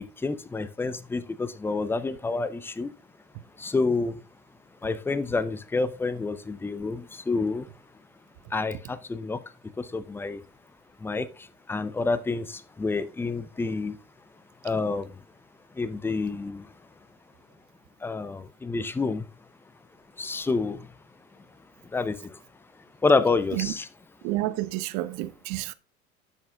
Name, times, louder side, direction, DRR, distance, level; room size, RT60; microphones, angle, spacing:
voice 1, 0.0-2.9 3.6-4.1 4.8-7.6 8.5-9.4 9.8-10.4 11.0-11.3 11.7-14.0 14.6-15.1 15.8-16.7 18.0-19.2 20.2-20.8 21.9-22.2 23.0-23.9, left 3 dB, 5° left, 0.5 m, -28 dB
voice 2, 24.2-25.7, right 17 dB, 45° right, 0.8 m, -30 dB
12.0 x 6.3 x 2.3 m
figure-of-eight pair, 75°, 40 cm